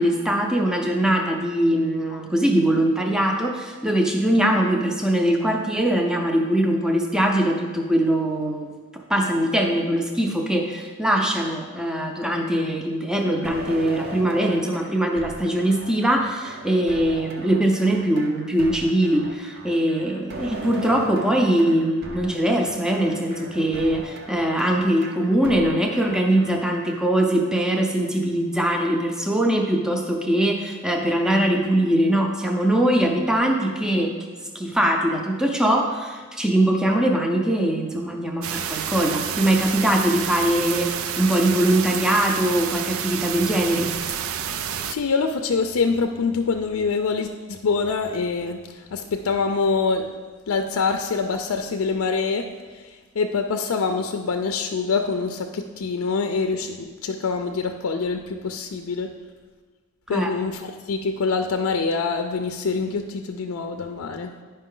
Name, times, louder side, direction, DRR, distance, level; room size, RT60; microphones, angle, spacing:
voice 1, 0.0-8.7 9.1-34.1 34.5-43.9 60.1-60.3, right 1 dB, 5° right, 2 dB, 0.5 m, -22 dB
sound 1, 13.4-27.1, right 1 dB, 50° right, 0.8 m, -39 dB
sound 2, 38.4-45.0, right 8 dB, 80° right, 0.4 m, -29 dB
voice 2, 44.8-50.1 50.5-59.1 60.1-64.3, left 4 dB, 85° left, 6 dB, 0.4 m, -25 dB
10.0 x 5.4 x 3.8 m, 1.4 s
head